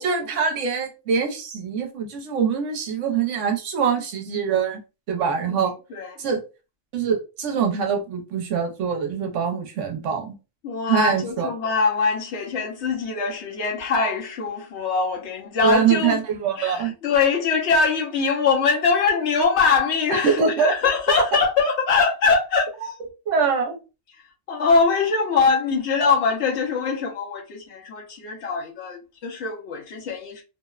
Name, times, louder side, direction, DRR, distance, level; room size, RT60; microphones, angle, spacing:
voice 1, 0.0-4.8 5.1-5.7 6.2-6.4 6.9-10.3 10.9-11.5 15.6-16.9 20.1-20.7 21.1-21.2 22.8-22.9 23.3-23.8, right 6 dB, 70° right, 0.9 m, -23 dB
voice 2, 5.5-6.1 10.6-16.2 16.6-22.9 24.5-30.4, left 4 dB, 65° left, 0.9 m, -22 dB
2.7 x 2.0 x 2.3 m
omnidirectional pair, 1.3 m